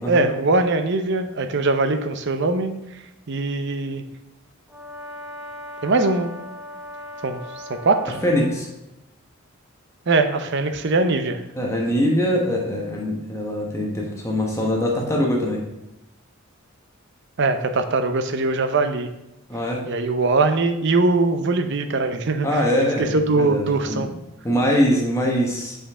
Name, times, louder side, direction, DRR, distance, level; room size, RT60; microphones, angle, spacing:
voice 1, 0.1-2.7 3.3-4.0 5.8-6.3 7.2-7.4 7.7-8.2 10.1-11.4 17.4-19.1 19.9-22.6 23.0-24.1, right 3 dB, 55° right, 8 dB, 0.6 m, -21 dB
Brass instrument, 4.7-8.6, left 1 dB, 5° right, 0.9 m, -38 dB
voice 2, 8.2-8.7 11.6-15.6 19.5-19.8 22.4-24.1 24.4-25.8, equal, 15° left, -2 dB, 1.2 m, -22 dB
7.2 x 5.2 x 3.6 m, 0.91 s
head